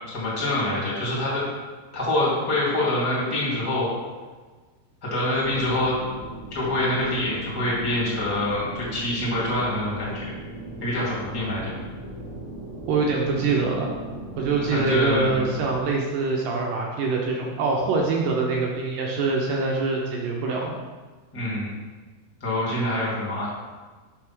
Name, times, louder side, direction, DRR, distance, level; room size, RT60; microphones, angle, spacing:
voice 1, 0.1-1.5 1.9-3.9 5.0-6.0 6.5-10.2 10.8-11.7 14.5-15.4 21.3-21.7 22.4-23.5, left 1 dB, 10° left, -7 dB, 1.2 m, -25 dB
sound 1, 5.4-15.9, right 1 dB, 55° left, 0.4 m, -38 dB
voice 2, 12.9-13.9 14.4-20.8, right 3 dB, 80° right, -1 dB, 2.0 m, -24 dB
6.6 x 4.7 x 6.1 m, 1.3 s
omnidirectional pair, 4.9 m